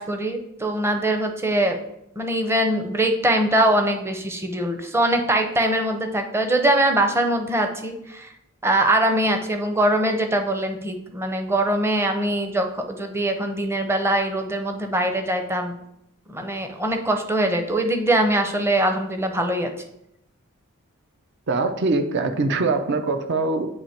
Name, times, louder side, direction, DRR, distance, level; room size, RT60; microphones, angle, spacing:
voice 1, 0.0-1.8 2.2-8.3 8.6-15.7 16.3-19.7, right 1 dB, 10° right, 5 dB, 0.6 m, -22 dB
voice 2, 21.5-23.7, right 3 dB, 55° right, 7 dB, 0.6 m, -23 dB
8.8 x 2.9 x 4.3 m, 0.79 s
head